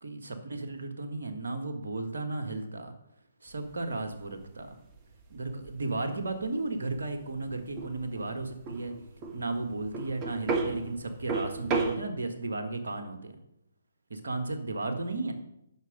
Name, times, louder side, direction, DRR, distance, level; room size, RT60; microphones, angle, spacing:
voice 1, 0.0-2.9 3.4-4.8 5.3-8.9 9.3-13.3 14.1-15.3, right 2 dB, 65° right, 5 dB, 1.6 m, -34 dB
sound 1, 3.5-12.0, right 4 dB, 25° right, 1.2 m, -35 dB
9.4 x 6.3 x 6.1 m, 0.81 s
figure-of-eight pair, 135°, 0 cm